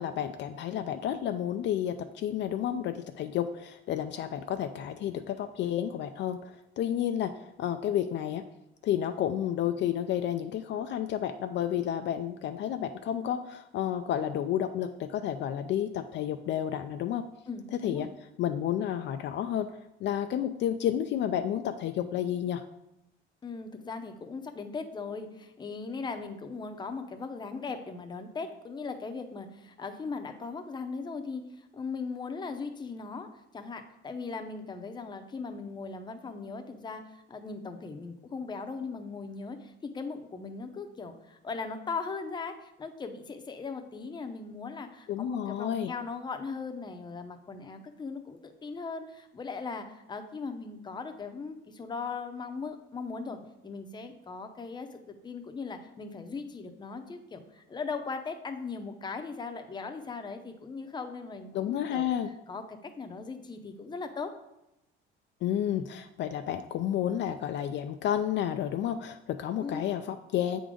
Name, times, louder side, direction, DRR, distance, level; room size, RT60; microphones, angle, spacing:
voice 1, 0.0-6.4 6.8-8.4 8.8-17.3 17.7-18.1 18.4-19.7 20.0-22.6 45.1-45.9 61.5-62.3 65.4-70.6, left 10 dB, 60° left, 7 dB, 0.4 m, -31 dB
voice 2, 17.5-18.1 23.4-33.3 33.5-62.1 62.5-64.3 69.6-69.8, left 4 dB, 20° left, 6 dB, 0.7 m, -39 dB
7.9 x 3.8 x 5.0 m, 0.88 s
cardioid pair, 135°, 21 cm